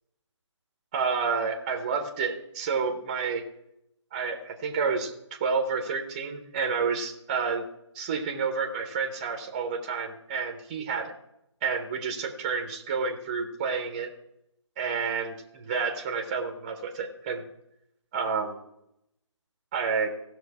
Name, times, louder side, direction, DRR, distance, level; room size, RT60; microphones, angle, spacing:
voice 1, 0.9-3.4 4.1-5.1 5.4-7.7 7.9-11.1 11.6-14.1 14.8-17.4 18.1-18.6 19.7-20.1, right 5 dB, 15° right, 4 dB, 0.7 m, -29 dB
15.5 x 6.2 x 4.7 m, 0.81 s
figure-of-eight pair, 165°, 16 cm